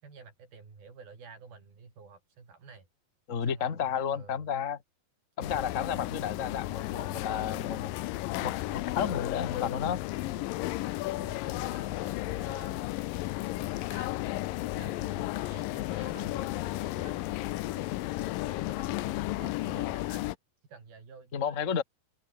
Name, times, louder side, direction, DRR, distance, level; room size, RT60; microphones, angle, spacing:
voice 1, 0.0-2.9 3.4-4.5 5.7-6.0 8.7-9.0 10.3-10.4 11.1-12.8 13.5-14.1 14.6-20.3 20.7-21.8, right 5 dB, 75° right, 8.2 m, -51 dB
voice 2, 3.3-4.8 5.4-7.9 8.4-8.5 8.9-10.0 21.3-21.8, left 7 dB, 60° left, 0.7 m, -32 dB
sound 1, 5.4-20.3, left 18 dB, 75° left, 2.3 m, -33 dB
omnidirectional pair, 4.3 m